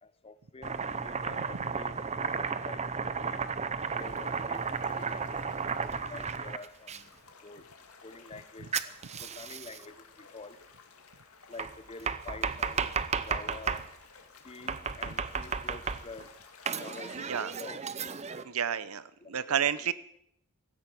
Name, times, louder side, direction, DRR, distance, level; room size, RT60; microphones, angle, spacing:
voice 1, 0.0-3.5 3.9-5.5 5.8-7.1 7.4-7.7 8.0-8.9 9.2-10.6 11.5-12.9 13.2-13.8 14.4-16.3 16.8-17.8 19.2-19.9, left 3 dB, 25° left, 0.8 m, -48 dB
Domestic sounds home sounds, 0.6-7.0 8.7-9.8 11.6-13.9 14.7-16.2 16.7-18.4, right 5 dB, 30° right, 0.7 m, -34 dB
sound 1, 3.8-17.2, left 5 dB, 90° left, 2.2 m, -55 dB
voice 2, 17.1-17.5 18.4-19.9, right 8 dB, 85° right, 0.8 m, -30 dB
17.0 x 14.0 x 6.1 m
head